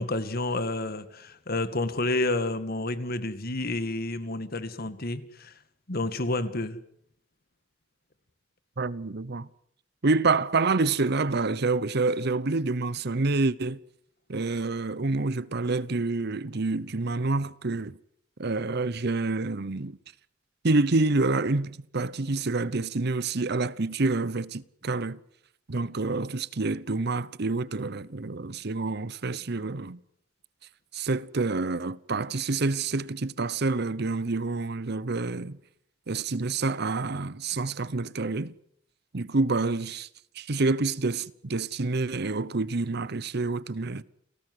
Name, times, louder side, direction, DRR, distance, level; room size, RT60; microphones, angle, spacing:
voice 1, 0.0-5.5 5.9-6.8, left 2 dB, 55° left, 2.1 m, -30 dB
voice 2, 8.8-9.5 10.0-13.8 14.3-18.0 18.4-20.0 20.6-25.2 25.7-30.0 30.9-35.6 36.1-38.5 39.1-40.1 40.3-44.0, right 3 dB, 60° right, 0.9 m, -27 dB
29.5 x 18.0 x 8.0 m
head